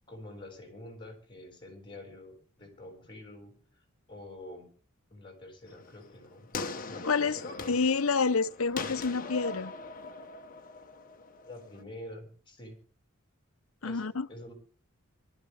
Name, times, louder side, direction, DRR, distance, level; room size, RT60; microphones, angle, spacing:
voice 1, 0.1-3.8 4.1-4.7 5.1-6.5 6.9-7.8 11.4-12.8 13.8-14.5, left 1 dB, 25° left, 6.7 m, -47 dB
sound 1, 5.7-11.8, left 4 dB, 45° left, 1.4 m, -41 dB
voice 2, 7.0-7.4 7.7-9.7 13.8-14.3, left 4 dB, 85° left, 0.9 m, -28 dB
24.0 x 13.0 x 3.6 m
head